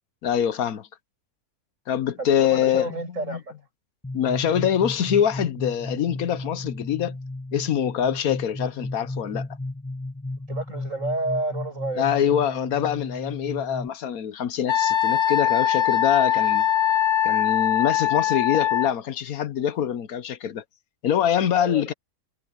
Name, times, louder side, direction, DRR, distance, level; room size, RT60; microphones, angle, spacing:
voice 1, 0.2-0.9 1.9-3.0 3.2-3.4 4.1-7.2 7.5-9.5 12.0-16.7 17.2-20.6 21.0-21.9, left 9 dB, 75° left, 1.3 m, -24 dB
voice 2, 2.2-3.6 10.5-12.1 21.5-21.8, right 2 dB, 55° right, 7.3 m, -30 dB
sound 1, 4.0-13.9, left 2 dB, 5° left, 1.5 m, -34 dB
Wind instrument woodwind instrument, 14.7-18.9, left 11 dB, 55° left, 1.7 m, -22 dB
omnidirectional pair, 1.6 m